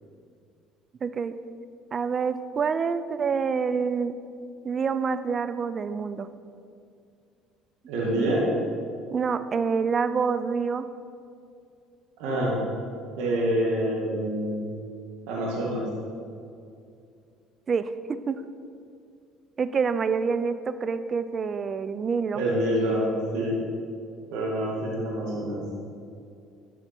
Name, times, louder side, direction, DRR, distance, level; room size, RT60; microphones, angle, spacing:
voice 1, 1.0-1.4 1.9-4.2 4.6-6.3 9.1-10.9 17.7-18.4 19.6-22.4, right 5 dB, 40° right, 12 dB, 0.5 m, -27 dB
voice 2, 7.9-8.5 12.2-12.6 13.2-14.6 15.3-15.9 22.3-23.6 24.3-25.6, right 1 dB, 75° right, -4 dB, 2.0 m, -26 dB
10.5 x 5.9 x 4.5 m, 2.4 s
hypercardioid pair, 70°, 0 cm